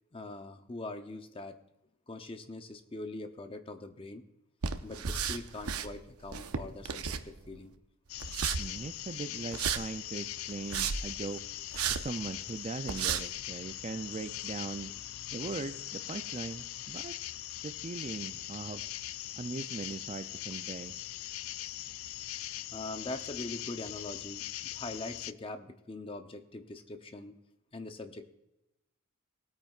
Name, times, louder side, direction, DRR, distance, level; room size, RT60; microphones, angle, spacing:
voice 1, 0.1-1.6 2.1-4.2 4.8-7.7 22.7-27.4 27.7-28.3, left 2 dB, 25° left, 8 dB, 0.6 m, -42 dB
sound 1, 4.6-5.9 6.2-7.6 8.2-8.6 9.5-9.8 10.5-11.1 11.7-12.0 12.5-12.6 12.9-13.2, right 7 dB, 80° right, 0.7 m, -33 dB
sound 2, 8.1-25.3, left 14 dB, 70° left, 0.4 m, -41 dB
voice 2, 8.6-11.4 11.9-14.9 15.3-17.1 17.6-18.8 19.4-21.0, right 3 dB, 30° right, 10 dB, 0.4 m, -40 dB
19.0 x 8.8 x 2.4 m, 0.91 s
head